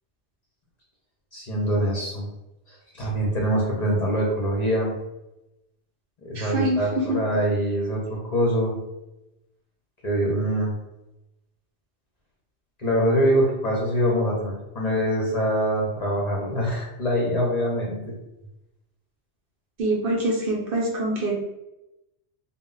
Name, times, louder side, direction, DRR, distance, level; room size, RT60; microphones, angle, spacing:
voice 1, 1.3-2.3 2.7-4.9 6.2-8.8 10.0-10.7 12.8-18.1, equal, 45° left, -3 dB, 0.6 m, -24 dB
voice 2, 6.3-7.2 19.8-21.4, right 1 dB, 60° right, -2 dB, 0.7 m, -25 dB
2.0 x 2.0 x 3.7 m, 0.93 s
omnidirectional pair, 1.2 m